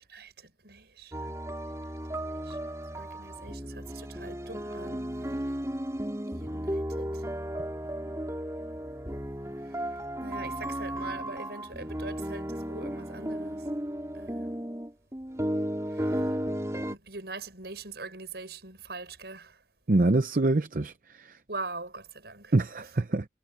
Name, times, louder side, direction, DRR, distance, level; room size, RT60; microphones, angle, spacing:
voice 1, 0.6-1.3 2.5-5.0 6.3-7.1 10.2-13.6 14.1-14.5 16.9-19.5 21.5-22.5 23.1-23.2, right 3 dB, 65° right, 6.2 m, -42 dB
sound 1, 1.1-17.0, equal, 15° right, 4.2 m, -34 dB
voice 2, 19.9-21.4 22.5-23.3, right 2 dB, 50° right, 0.7 m, -25 dB
head